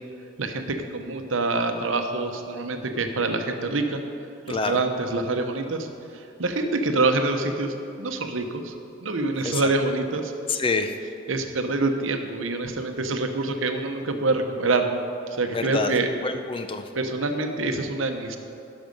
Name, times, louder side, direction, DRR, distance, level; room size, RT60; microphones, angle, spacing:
voice 1, 0.4-4.0 4.5-5.9 6.1-8.7 9.0-10.3 11.3-14.9 15.3-16.1 16.9-18.4, right 3 dB, 90° right, 6 dB, 0.8 m, -26 dB
voice 2, 4.5-4.8 9.4-9.7 10.5-10.9 15.5-15.9 16.2-16.8, left 3 dB, 25° left, 7 dB, 0.4 m, -27 dB
11.5 x 6.1 x 5.3 m, 2.7 s
head